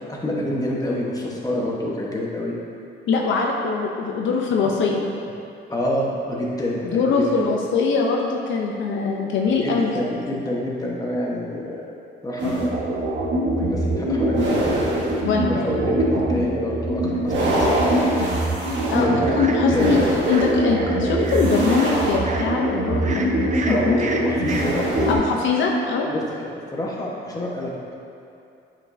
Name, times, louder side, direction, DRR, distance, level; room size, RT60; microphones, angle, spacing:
voice 1, 0.1-2.5 5.7-7.5 9.6-11.8 12.2-12.9 13.6-14.8 15.4-18.2 18.9-19.2 19.7-20.0 23.7-25.1 26.1-27.9, left 1 dB, 20° left, -4 dB, 1.3 m, -27 dB
voice 2, 3.1-5.0 6.8-9.9 15.2-15.5 18.9-20.0 20.3-24.0 25.1-26.1, left 4 dB, 75° left, 0 dB, 0.7 m, -22 dB
sound 1, 12.4-25.2, right 1 dB, 65° right, 1.5 m, -22 dB
sound 2, 19.2-24.6, right 3 dB, 40° right, 0.7 m, -34 dB
8.7 x 5.3 x 2.8 m, 2.6 s
cardioid pair, 90°, 20 cm